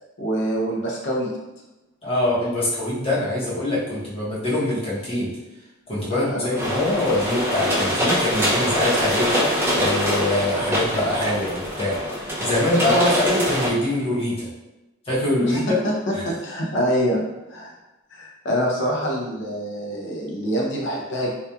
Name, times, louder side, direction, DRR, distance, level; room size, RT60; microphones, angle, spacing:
voice 1, 0.2-1.3 6.1-6.5 12.7-13.0 15.4-15.6 15.8-17.2 17.5-17.7 18.1-21.3, equal, 60° left, -2 dB, 0.6 m, -25 dB
voice 2, 2.0-5.4 5.9-9.3 9.8-12.0 12.4-14.5 15.0-15.8 16.1-16.3, left 1 dB, 25° left, -7 dB, 0.8 m, -23 dB
sound 1, 6.5-13.7, equal, 10° right, 0.4 m, -23 dB
2.8 x 2.3 x 2.3 m, 1.0 s
head